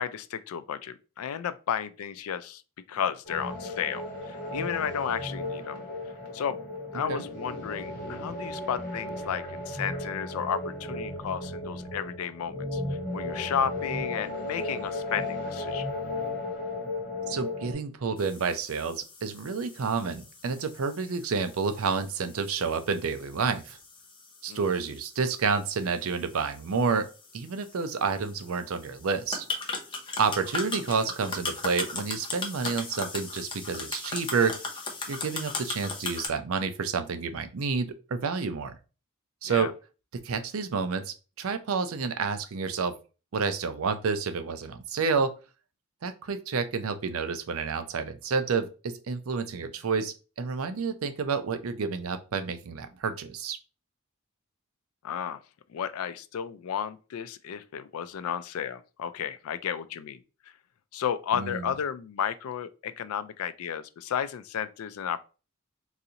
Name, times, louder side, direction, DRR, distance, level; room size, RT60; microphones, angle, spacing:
voice 1, 0.0-2.6 2.9-5.8 6.3-6.6 6.9-12.8 13.1-15.9 24.5-24.7 31.0-31.1 39.4-39.7 55.0-55.4 55.7-60.2 60.9-65.2, left 8 dB, 90° left, 0.3 m, -33 dB
sound 1, 3.2-17.7, left 2 dB, 45° left, 1.2 m, -35 dB
voice 2, 17.3-23.8 24.4-27.1 27.3-29.5 30.2-34.5 35.1-38.8 39.4-39.7 40.2-42.9 43.3-45.3 46.0-53.6 61.3-61.7, right 5 dB, 80° right, 0.5 m, -29 dB
sound 2, 18.2-36.3, left 3 dB, 25° left, 0.6 m, -39 dB
3.9 x 2.5 x 2.8 m
head